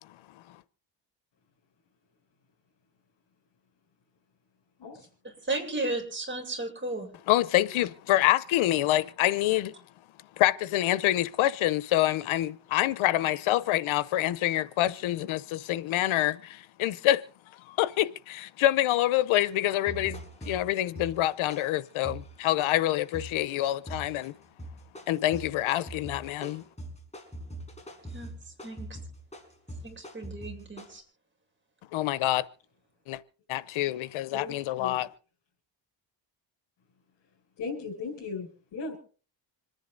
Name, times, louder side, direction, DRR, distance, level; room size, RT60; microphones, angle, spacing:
voice 1, 5.5-7.1 28.1-28.3 28.6-28.9 29.8-31.0, right 2 dB, 25° right, 7.4 m, -34 dB
voice 2, 7.3-9.7 10.4-17.2 17.7-24.3 25.1-26.6 31.9-32.4 33.1-33.2 33.5-35.1, left 14 dB, 85° left, 1.0 m, -26 dB
sound 1, 19.3-19.5 19.9-23.5 23.9-24.3 24.6-31.0, right 1 dB, 15° left, 5.2 m, -43 dB
voice 3, 34.3-35.0 37.6-39.0, left 4 dB, 65° left, 6.1 m, -37 dB
26.5 x 10.5 x 3.9 m
cardioid pair, 105°, 47 cm